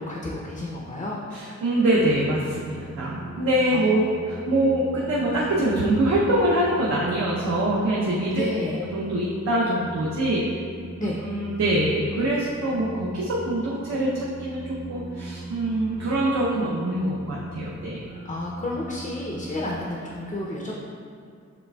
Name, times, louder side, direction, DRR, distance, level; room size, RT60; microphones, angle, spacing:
voice 1, 0.0-1.2 3.7-4.0 8.3-8.8 10.9-11.2 18.1-20.7, left 2 dB, 25° left, -3 dB, 0.4 m, -31 dB
voice 2, 1.3-8.5 8.7-10.4 11.0-18.0, right 1 dB, 65° right, -5 dB, 0.6 m, -24 dB
sound 1, 1.7-19.8, right 1 dB, 20° right, 0.6 m, -40 dB
7.0 x 3.3 x 2.2 m, 2.3 s
wide cardioid pair, 165°, 29 cm